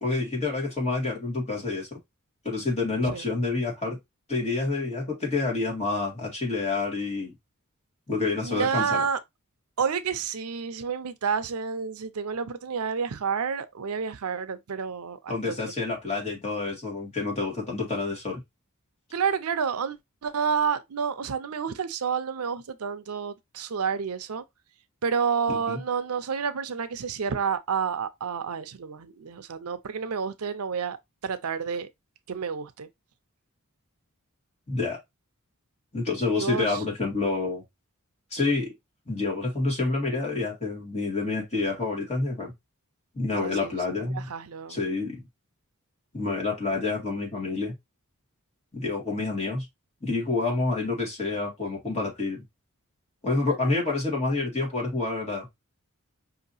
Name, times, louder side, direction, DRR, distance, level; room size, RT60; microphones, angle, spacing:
voice 1, 0.0-2.0 2.4-4.0 4.3-7.3 8.1-9.0 15.3-18.4 25.5-25.8 34.7-35.0 35.9-37.6 38.3-38.7 39.1-42.5 43.2-44.3 44.7-45.2 46.1-47.7 48.7-49.7 50.0-52.4 53.2-55.5, left 3 dB, 30° left, 2.2 m, -28 dB
voice 2, 8.4-9.2 9.8-15.7 19.1-24.4 25.0-31.0 31.2-31.9 32.3-32.9 36.4-36.8 43.3-44.8, right 6 dB, 80° right, 0.6 m, -30 dB
5.4 x 2.9 x 2.7 m
head